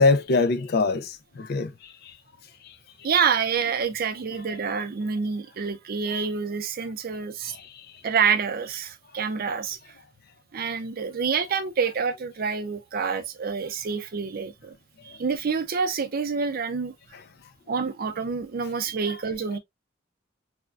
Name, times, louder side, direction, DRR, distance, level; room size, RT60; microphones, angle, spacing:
voice 1, 0.0-2.2 2.6-2.8 4.5-4.6 7.5-8.0 15.0-15.2 17.1-17.2 19.1-19.2 19.5-19.6, left 3 dB, 55° left, 0.4 m, -25 dB
voice 2, 3.0-7.5 8.0-9.8 10.5-14.7 15.0-16.9 17.7-19.6, right 6 dB, 50° right, 0.5 m, -27 dB
3.4 x 2.2 x 2.3 m
head